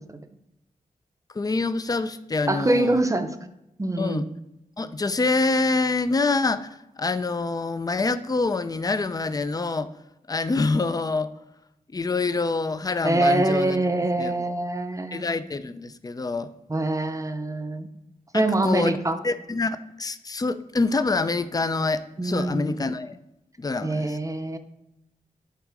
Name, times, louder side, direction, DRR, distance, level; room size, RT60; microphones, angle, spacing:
voice 1, 1.3-3.1 4.0-4.2 4.8-6.7 7.0-9.9 10.3-11.3 11.9-13.8 14.2-14.3 15.1-16.5 18.3-19.0 19.2-23.2 23.6-24.2, left 3 dB, 25° left, 12 dB, 0.4 m, -26 dB
voice 2, 2.5-3.3 3.8-4.3 13.0-15.2 16.7-17.9 18.3-19.2 22.2-22.8 23.8-24.6, right 2 dB, 20° right, 8 dB, 0.6 m, -24 dB
8.3 x 3.6 x 4.8 m, 0.87 s
wide cardioid pair, 80°, 15 cm